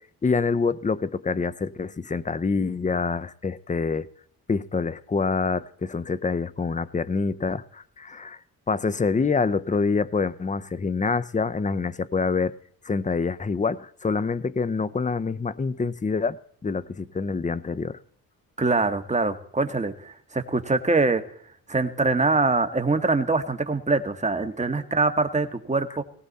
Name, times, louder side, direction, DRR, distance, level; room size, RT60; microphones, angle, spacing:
voice 1, 0.2-4.1 4.5-8.4 8.7-12.5 12.8-18.0, left 4 dB, 20° left, 0.8 m, -26 dB
voice 2, 18.6-21.2 21.7-26.0, right 3 dB, 20° right, 1.8 m, -24 dB
18.0 x 15.5 x 4.2 m
cardioid pair, 80°, 37 cm